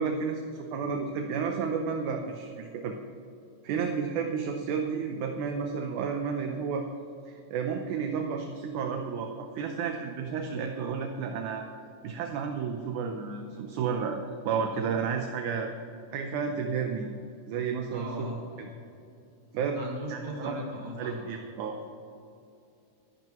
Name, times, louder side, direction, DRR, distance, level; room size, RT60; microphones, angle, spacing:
voice 1, 0.0-2.9 3.6-6.9 7.3-11.7 12.0-15.7 16.1-17.1 17.5-18.1 19.5-19.8 20.1-20.5 21.0-21.8, right 6 dB, 75° right, 3 dB, 2.1 m, -31 dB
voice 2, 17.9-18.9 19.7-21.3, equal, 40° right, -3 dB, 3.1 m, -38 dB
22.5 x 11.0 x 3.1 m, 2.7 s
omnidirectional pair, 3.9 m